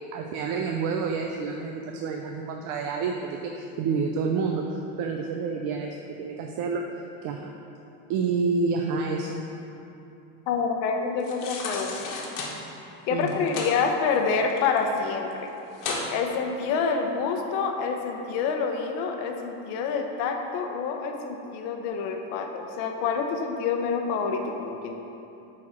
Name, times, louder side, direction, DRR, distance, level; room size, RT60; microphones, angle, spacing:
voice 1, 0.0-6.8 7.2-7.5 8.1-9.4 13.1-13.4, right 4 dB, 65° right, 2 dB, 0.6 m, -29 dB
voice 2, 10.5-12.2 13.1-15.3 16.1-24.9, left 5 dB, 85° left, 3 dB, 0.9 m, -27 dB
sound 1, 11.2-12.5 13.2-13.7 14.1-15.0 15.3-15.4 15.7-16.1 16.6-16.7, left 4 dB, 60° left, 1.3 m, -33 dB
8.8 x 4.2 x 4.4 m, 2.9 s
cardioid pair, 130°, 35 cm